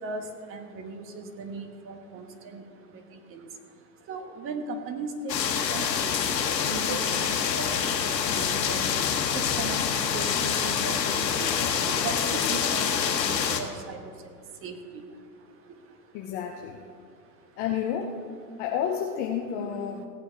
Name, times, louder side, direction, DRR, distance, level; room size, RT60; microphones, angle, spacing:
voice 1, 0.0-2.6 3.1-3.5 4.1-5.4 5.7-8.9 9.3-11.5 11.9-14.1 14.6-15.0, right 4 dB, 25° right, 6 dB, 1.3 m, -38 dB
sound 1, 5.3-13.6, left 7 dB, 75° left, 1.4 m, -26 dB
voice 2, 16.1-16.8 17.6-18.2 18.6-20.0, left 8 dB, 20° left, 3 dB, 0.5 m, -30 dB
16.5 x 8.5 x 4.0 m, 2.2 s
hypercardioid pair, 110°, 49 cm